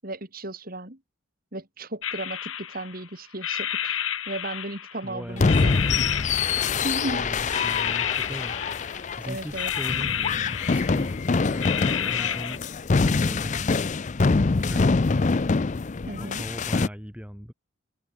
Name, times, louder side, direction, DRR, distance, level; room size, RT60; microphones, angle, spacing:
voice 1, 0.0-1.0 1.5-4.0 4.3-6.1 6.8-7.3 9.3-9.7 16.1-16.5, right 1 dB, 45° right, 3.7 m, -35 dB
sound 1, 2.0-3.0 3.4-5.0 5.5-7.1 7.5-9.1 9.5-11.2 11.6-12.6, left 10 dB, 85° left, 5.1 m, -30 dB
voice 2, 5.0-5.8 7.0-8.6 9.2-12.6 13.0-13.9 14.2-15.2 16.2-17.5, equal, 5° right, 5.8 m, -39 dB
sound 2, 5.4-16.9, left 4 dB, 35° left, 0.5 m, -25 dB
head